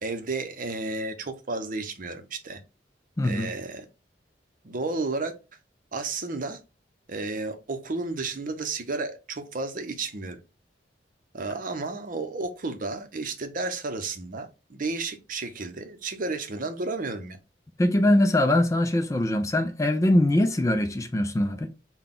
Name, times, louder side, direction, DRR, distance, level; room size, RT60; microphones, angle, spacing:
voice 1, 0.0-2.6 3.2-3.9 4.6-5.3 5.9-6.6 7.1-10.4 11.3-17.4, right 3 dB, 50° right, 0.7 m, -32 dB
voice 2, 3.2-3.5 17.8-21.7, left 1 dB, 20° left, 0.4 m, -22 dB
3.9 x 2.2 x 3.6 m
head